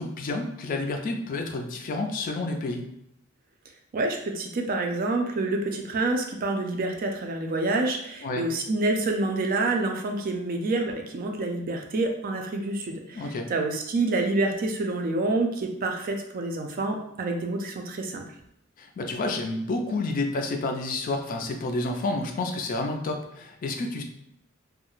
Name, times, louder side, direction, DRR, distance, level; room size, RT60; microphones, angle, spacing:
voice 1, 0.0-2.8 8.2-8.4 13.1-13.5 18.8-24.0, left 2 dB, 40° left, 4 dB, 0.3 m, -30 dB
voice 2, 3.9-18.2, right 2 dB, 45° right, 3 dB, 0.4 m, -27 dB
2.3 x 2.1 x 2.9 m, 0.81 s
head